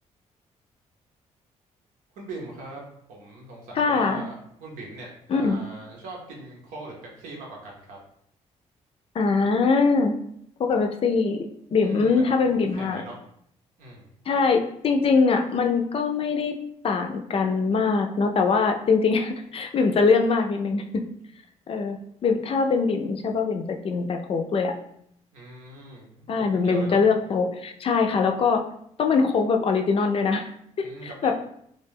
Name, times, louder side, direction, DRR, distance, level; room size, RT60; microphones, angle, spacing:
voice 1, 2.1-2.8 3.1-8.0 11.8-13.2 13.8-14.1 25.3-26.0 26.4-27.0 30.8-31.3, right 2 dB, 90° right, -1 dB, 0.7 m, -41 dB
voice 2, 3.8-4.2 5.3-5.6 9.1-10.1 10.6-11.4 11.7-13.0 14.3-16.5 16.8-21.0 21.7-24.8 26.3-28.6 29.0-30.4 30.8-30.9 31.2-31.3, left 4 dB, 45° left, 4 dB, 0.4 m, -22 dB
2.3 x 2.2 x 3.3 m, 0.71 s
cardioid pair, 75°, 13 cm